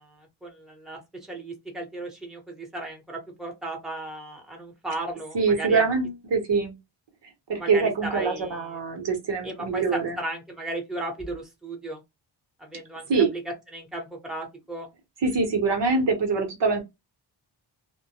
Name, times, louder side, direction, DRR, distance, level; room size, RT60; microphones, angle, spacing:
voice 1, 0.0-5.8 7.5-8.6 9.4-12.0 12.6-13.2 13.7-14.9, right 2 dB, ahead, 0.9 m, -35 dB
voice 2, 5.3-6.7 7.5-10.2 13.1-13.3 15.2-16.8, right 4 dB, 65° right, 1.0 m, -24 dB
2.2 x 2.1 x 2.8 m
wide cardioid pair, 100°, 45 cm